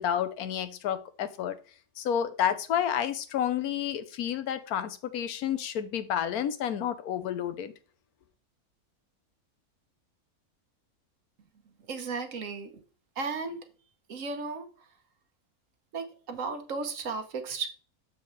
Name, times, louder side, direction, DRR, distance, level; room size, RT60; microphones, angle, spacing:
voice 1, 0.0-1.6 2.0-7.7, left 9 dB, 85° left, 1.3 m, -30 dB
voice 2, 11.9-12.7 13.2-13.6 14.1-14.7 15.9-17.7, right 4 dB, 60° right, 1.3 m, -34 dB
7.0 x 6.3 x 3.1 m
omnidirectional pair, 1.5 m